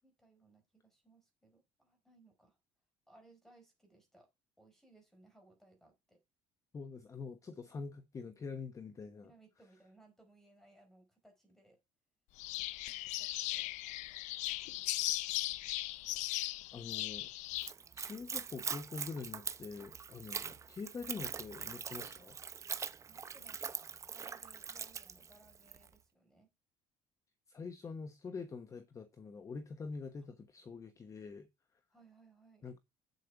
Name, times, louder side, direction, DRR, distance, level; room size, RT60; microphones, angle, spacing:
voice 1, 0.0-2.6 3.1-4.3 4.6-6.2 9.2-11.8 12.9-15.1 23.1-26.5 31.9-32.7, right 2 dB, 5° left, 4.6 m, -65 dB
voice 2, 6.7-9.3 16.7-17.3 17.9-22.4 27.5-31.5 32.6-32.8, left 4 dB, 25° left, 1.1 m, -45 dB
sound 1, 12.4-17.7, left 17 dB, 75° left, 0.5 m, -38 dB
Splash splatter / Trickle dribble, 17.5-25.9, right 6 dB, 25° right, 0.7 m, -43 dB
8.5 x 8.1 x 4.6 m
cardioid pair, 135°, 12 cm